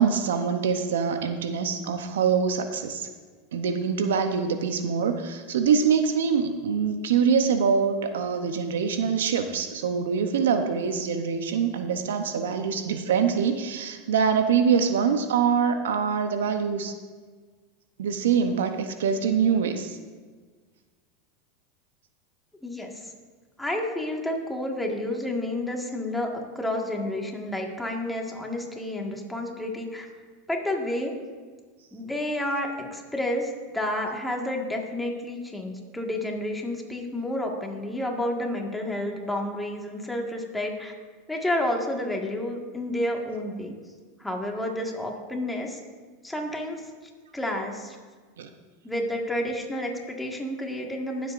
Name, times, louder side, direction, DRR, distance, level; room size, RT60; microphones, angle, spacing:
voice 1, 0.0-3.1 3.5-16.9 18.0-20.0 48.4-48.5, right 6 dB, 85° right, 8 dB, 0.8 m, -24 dB
voice 2, 22.6-23.1 23.6-30.1 30.5-31.1 31.9-40.9 41.3-43.8 44.2-45.8 46.2-46.8 47.3-48.0 48.8-51.3, left 1 dB, 5° left, 0 dB, 1.7 m, -30 dB
19.5 x 7.8 x 2.6 m, 1.5 s
hypercardioid pair, 110°, 0 cm